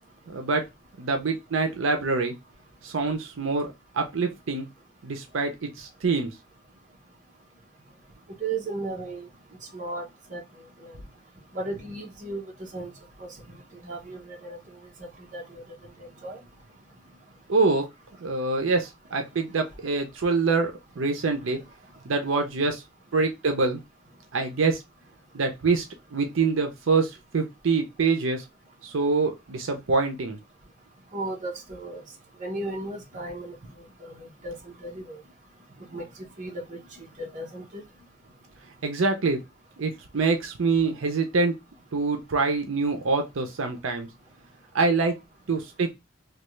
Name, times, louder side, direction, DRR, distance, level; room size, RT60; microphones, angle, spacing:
voice 1, 0.3-0.6 1.0-2.3 2.8-3.7 3.9-4.7 5.0-6.3 17.5-17.9 18.2-21.6 22.0-22.8 23.1-23.8 24.3-24.8 25.3-25.8 26.1-28.4 28.8-30.4 38.8-39.4 39.8-41.5 41.9-44.1 44.7-45.2 45.5-45.9, right 4 dB, 80° right, 0.6 m, -25 dB
voice 2, 8.4-9.3 9.7-10.0 10.3-10.4 10.8-11.0 11.5-12.9 13.2-13.3 13.8-14.6 15.3-15.6 16.2-16.4 31.1-32.0 32.4-33.5 34.0-35.2 35.9-36.0 36.4-37.8, right 2 dB, 40° right, 1.0 m, -35 dB
3.3 x 2.3 x 3.1 m
head